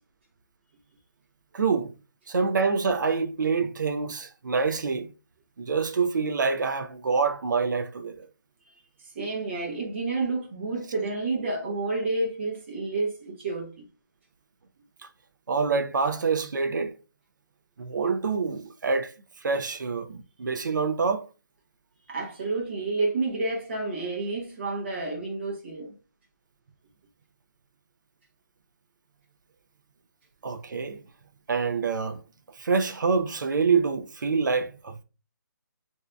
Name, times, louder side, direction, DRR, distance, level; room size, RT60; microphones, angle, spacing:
voice 1, 1.5-1.9 2.3-5.1 5.6-8.3 15.5-16.9 17.8-19.1 19.4-21.3 30.4-31.0 31.5-32.2 32.6-35.0, right 5 dB, 70° right, 0.5 m, -26 dB
voice 2, 9.1-13.9 22.1-25.9, right 3 dB, 35° right, 1.1 m, -30 dB
5.9 x 2.7 x 2.2 m
hypercardioid pair, 170°, 10 cm